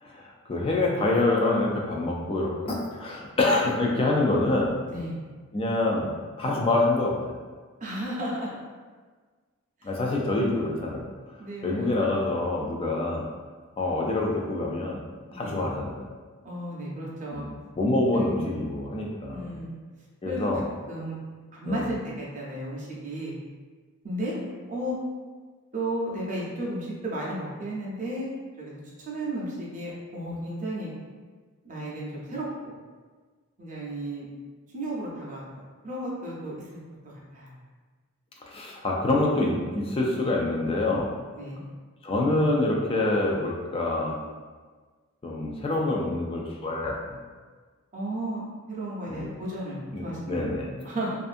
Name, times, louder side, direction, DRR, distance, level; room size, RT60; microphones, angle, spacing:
voice 1, 0.0-4.7 5.5-6.1 6.4-7.4 9.8-11.1 11.6-13.2 13.8-15.0 15.3-16.1 17.3-19.5 20.2-20.6 21.7-22.0 38.5-41.1 42.0-44.1 45.2-47.2 49.1-49.3 49.9-50.7, left 2 dB, 25° left, -2 dB, 0.3 m, -26 dB
voice 2, 7.8-8.5 11.4-12.1 15.3-15.7 16.4-17.4 18.1-18.3 19.3-19.7 20.2-20.5 20.9-21.2 21.5-23.3 24.0-24.3 24.7-25.0 25.7-28.3 28.6-28.8 29.1-30.9 31.6-32.5 33.6-34.2 34.7-35.4 35.8-36.5 37.3-37.5 41.4-41.6 47.9-48.4 48.7-51.2, right 1 dB, 35° right, -5 dB, 0.6 m, -33 dB
2.5 x 2.4 x 2.5 m, 1.4 s
head